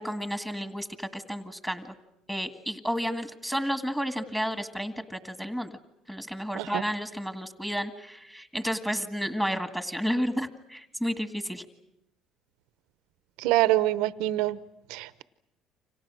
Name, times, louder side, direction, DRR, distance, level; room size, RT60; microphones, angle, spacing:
voice 1, 0.0-1.9 2.3-5.7 6.1-11.6, equal, 5° left, 7 dB, 1.8 m, -31 dB
voice 2, 13.4-14.6 14.9-15.2, right 15 dB, 80° right, 14 dB, 0.9 m, -25 dB
29.5 x 26.0 x 6.3 m, 0.87 s
supercardioid pair, 100°, 0 cm